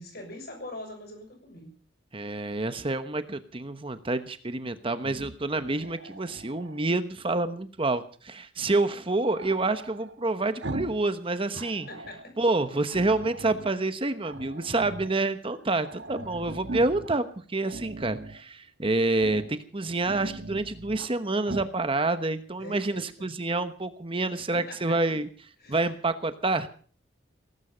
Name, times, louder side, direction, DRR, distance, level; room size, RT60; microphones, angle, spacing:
voice 1, 0.0-1.7 11.6-12.4 13.0-13.1 22.5-23.4 24.5-25.2 25.6-25.8, left 1 dB, 55° left, 5 dB, 6.6 m, -43 dB
voice 2, 2.1-11.9 12.4-25.3 25.7-26.7, right 2 dB, 30° right, 10 dB, 1.1 m, -28 dB
Growling, 4.9-6.9 9.3-11.1 11.4-12.3 12.9-13.8 14.2-15.2 15.5-15.6 15.8-17.1 17.6-18.4 19.1-19.5 19.9-21.1 21.4-21.7, right 2 dB, 65° right, 1.3 m, -40 dB
17.5 x 15.5 x 5.1 m, 0.43 s
head